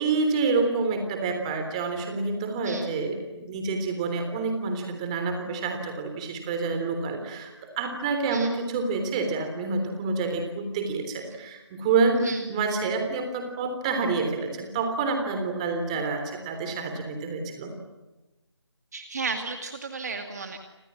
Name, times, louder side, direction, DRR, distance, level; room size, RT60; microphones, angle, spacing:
voice 1, 0.0-17.7, right 4 dB, 15° right, 5 dB, 3.4 m, -28 dB
voice 2, 12.2-12.5 18.9-20.6, right 4 dB, 35° right, 5 dB, 2.3 m, -33 dB
30.0 x 26.5 x 7.4 m, 1.1 s
figure-of-eight pair, 165°, 15 cm